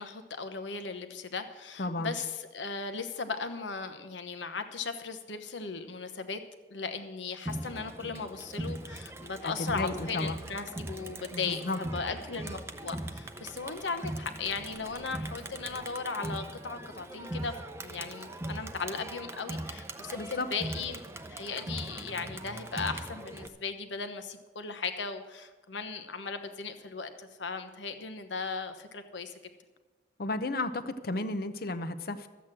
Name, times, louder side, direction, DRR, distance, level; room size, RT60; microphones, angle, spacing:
voice 1, 0.0-6.4 6.7-17.5 17.8-21.0 21.3-29.3, left 4 dB, 80° left, 8 dB, 1.1 m, -37 dB
voice 2, 1.8-2.1 9.4-10.4 11.3-11.8 20.2-20.5 30.2-32.3, left 2 dB, 55° left, 10 dB, 0.8 m, -33 dB
Crowd, 7.5-23.5, right 1 dB, 15° right, 0.6 m, -40 dB
13.5 x 8.2 x 7.6 m, 1.3 s
head